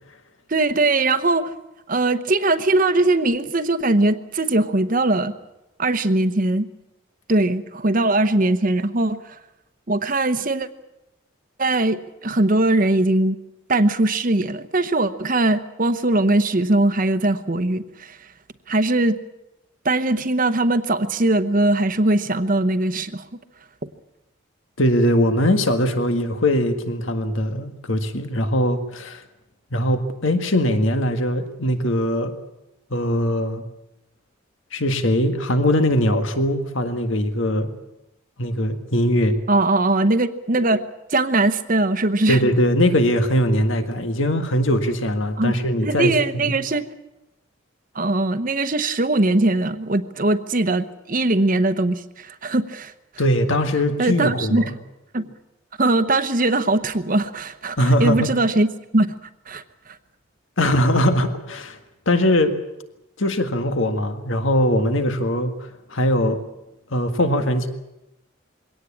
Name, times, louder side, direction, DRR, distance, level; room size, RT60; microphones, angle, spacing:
voice 1, 0.5-1.5 1.9-5.3 5.8-6.7 7.3-9.4 9.9-10.7 11.6-13.4 13.7-18.2 18.7-19.2 19.8-23.3 39.5-42.4 45.4-46.8 47.9-52.9 54.0-54.7 55.1-55.3 55.8-58.7 58.9-59.1 59.5-59.6, right 2 dB, 40° right, 11 dB, 1.0 m, -20 dB
voice 2, 24.8-29.2 29.7-32.3 32.9-33.6 34.7-37.7 38.4-39.4 42.3-46.5 53.2-54.7 57.8-58.3 60.6-61.8 62.0-62.6 63.2-66.4 66.9-67.7, equal, 75° left, 7 dB, 1.7 m, -21 dB
22.5 x 17.5 x 8.6 m, 0.94 s
head